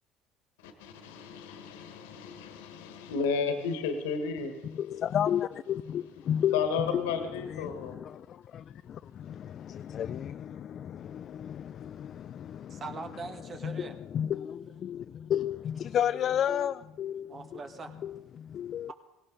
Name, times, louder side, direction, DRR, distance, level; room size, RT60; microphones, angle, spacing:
voice 1, 0.6-4.8 6.5-8.0, left 5 dB, 85° left, 1.6 m, -33 dB
voice 2, 4.6-13.0 13.6-17.6 18.0-18.9, left 9 dB, 50° left, 0.4 m, -33 dB
voice 3, 12.7-13.9 17.3-17.9, right 4 dB, 40° right, 2.0 m, -41 dB
18.0 x 17.0 x 4.0 m
hypercardioid pair, 70°, 0 cm